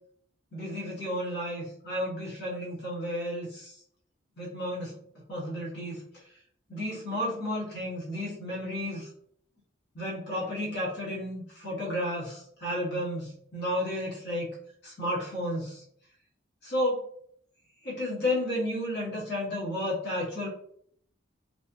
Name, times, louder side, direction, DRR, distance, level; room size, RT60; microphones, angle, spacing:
voice 1, 0.5-3.8 4.4-5.0 5.3-6.0 6.7-9.1 9.9-14.5 14.8-15.8 16.6-17.0 17.8-20.5, left 1 dB, 50° left, -5 dB, 1.1 m, -32 dB
3.2 x 2.4 x 2.6 m, 0.62 s
head